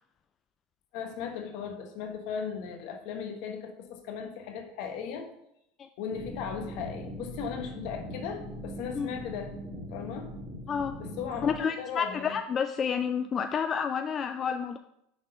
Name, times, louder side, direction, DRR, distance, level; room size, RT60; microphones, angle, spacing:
voice 1, 0.9-5.3 6.0-9.5 9.9-10.3 11.0-12.4, left 7 dB, 65° left, 4 dB, 1.2 m, -37 dB
sound 1, 6.1-11.6, equal, 15° right, 1.8 m, -41 dB
voice 2, 10.7-11.0 11.4-14.8, left 7 dB, 30° left, 7 dB, 0.3 m, -30 dB
6.1 x 3.7 x 5.3 m, 0.77 s
supercardioid pair, 115°, 0 cm